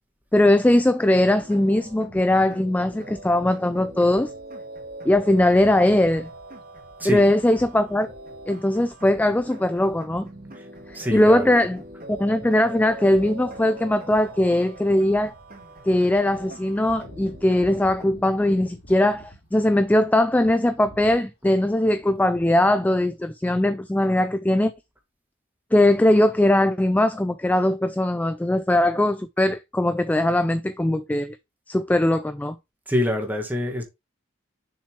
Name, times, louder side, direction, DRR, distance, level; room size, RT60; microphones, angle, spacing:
voice 1, 0.3-4.3 5.0-6.3 7.0-8.1 8.5-10.3 10.9-11.8 12.1-15.3 15.8-24.7 25.7-31.4 31.7-32.6, left 1 dB, 10° left, 0.3 m, -20 dB
sound 1, 1.3-18.4, right 1 dB, 45° right, 2.9 m, -42 dB
sound 2, 5.2-6.5 7.4-9.1 9.8-10.0 10.4-20.1 20.4-21.3 21.8-22.5, left 1 dB, 55° left, 2.4 m, -50 dB
voice 2, 7.0-7.3 10.6-10.7 10.9-11.7 21.4-21.6 32.9-33.8, left 1 dB, 10° right, 1.6 m, -26 dB
6.8 x 5.5 x 3.2 m
head